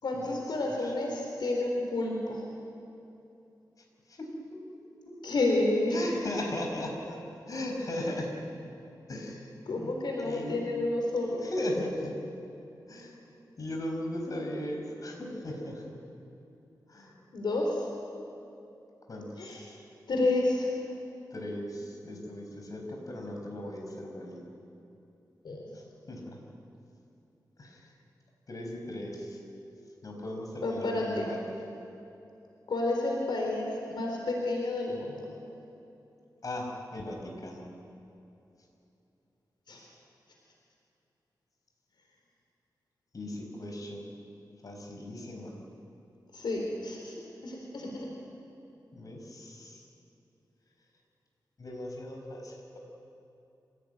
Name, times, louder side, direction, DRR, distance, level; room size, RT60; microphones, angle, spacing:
voice 1, 0.0-2.4 5.2-6.2 9.7-11.4 17.3-17.9 19.4-19.6 20.1-20.7 25.4-25.6 30.6-31.3 32.7-35.3 39.7-39.8 46.3-47.1 47.4-48.1, left 2 dB, 80° left, 0 dB, 4.0 m, -30 dB
voice 2, 5.9-7.2 7.5-8.4 9.1-9.5 9.7-9.9 10.2-10.6 11.4-12.2 12.9-13.2 13.6-15.9 16.9-17.1 19.1-19.8 21.3-24.5 25.7-26.4 27.6-27.9 28.5-29.4 30.0-31.4 36.4-37.7 43.1-44.1 44.6-45.6 48.9-49.9 51.6-52.8, left 1 dB, 50° left, 1 dB, 5.2 m, -37 dB
26.5 x 16.5 x 9.5 m, 2.8 s
wide cardioid pair, 110°, 8 cm